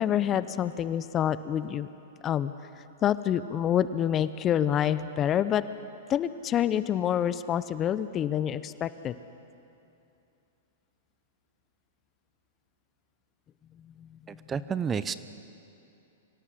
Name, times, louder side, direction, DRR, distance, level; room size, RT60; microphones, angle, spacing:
voice 1, 0.0-1.9 2.2-2.5 3.0-5.6 6.1-9.1 14.0-14.2 14.6-14.7, left 10 dB, 30° left, 14 dB, 0.7 m, -27 dB
voice 2, 14.3-15.1, right 7 dB, 20° right, 14 dB, 0.7 m, -30 dB
24.5 x 17.0 x 7.6 m, 2.8 s
hypercardioid pair, 120°, 0 cm